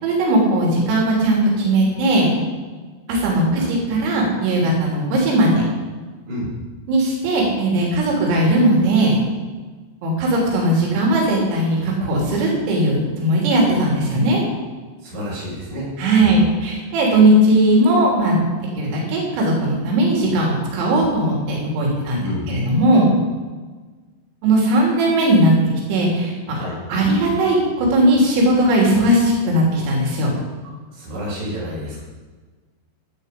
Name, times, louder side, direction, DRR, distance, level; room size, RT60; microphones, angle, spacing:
voice 1, 0.0-2.3 3.1-5.6 6.9-9.2 10.0-14.4 16.0-18.4 18.8-23.1 24.4-25.6 25.9-26.6 26.9-30.3, right 1 dB, 85° right, -2 dB, 6.1 m, -18 dB
voice 2, 3.5-4.0 6.3-6.5 15.0-15.9 16.2-16.4 22.2-22.5 26.5-26.8 30.9-32.0, equal, 60° right, -6 dB, 8.7 m, -30 dB
17.5 x 11.5 x 5.3 m, 1.4 s
omnidirectional pair, 5.9 m